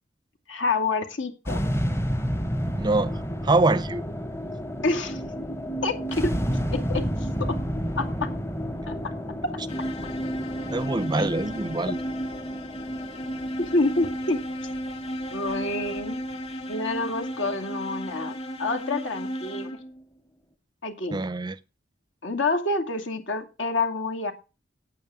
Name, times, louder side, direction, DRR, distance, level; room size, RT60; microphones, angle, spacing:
voice 1, 0.5-1.6 4.8-5.2 5.8-6.4 6.7-7.6 8.0-8.3 8.9-9.0 11.1-11.3 13.6-14.4 15.3-16.2 16.7-19.8 20.8-21.2 22.2-24.3, left 3 dB, 75° left, 2.4 m, -28 dB
sound 1, 1.5-17.9, equal, 15° left, 0.9 m, -31 dB
voice 2, 2.8-3.1 3.4-4.0 10.7-12.0 21.1-21.6, right 2 dB, 20° right, 0.5 m, -24 dB
sound 2, 9.7-20.0, equal, 35° left, 2.6 m, -34 dB
9.2 x 8.9 x 7.9 m
head